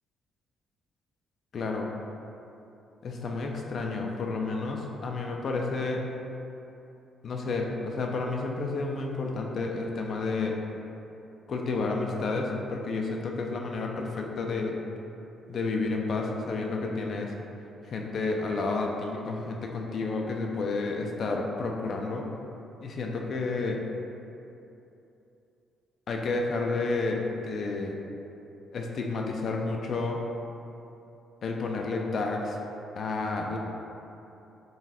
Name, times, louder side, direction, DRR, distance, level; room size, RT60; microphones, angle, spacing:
voice 1, 1.5-1.9 3.0-6.1 7.2-10.6 11.5-14.8 15.5-17.3 17.8-22.3 22.8-23.8 26.1-28.0 28.7-30.2 31.4-32.6 32.9-33.6, left 3 dB, 55° left, 1 dB, 0.4 m, -30 dB
4.0 x 2.4 x 4.2 m, 2.9 s
cardioid pair, 90°, 0 cm